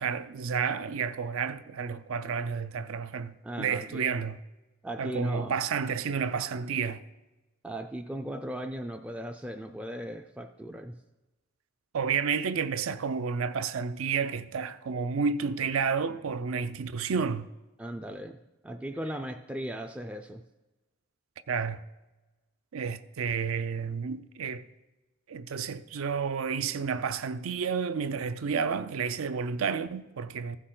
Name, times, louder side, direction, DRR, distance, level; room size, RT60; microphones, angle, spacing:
voice 1, 0.0-4.4 5.0-7.0 11.9-17.5 21.5-21.8 22.7-24.6 25.3-30.6, right 6 dB, 70° right, 0.5 m, -31 dB
voice 2, 3.4-4.1 4.8-5.6 7.6-11.0 17.8-20.4, right 1 dB, 5° right, 0.3 m, -37 dB
15.0 x 6.4 x 3.8 m
head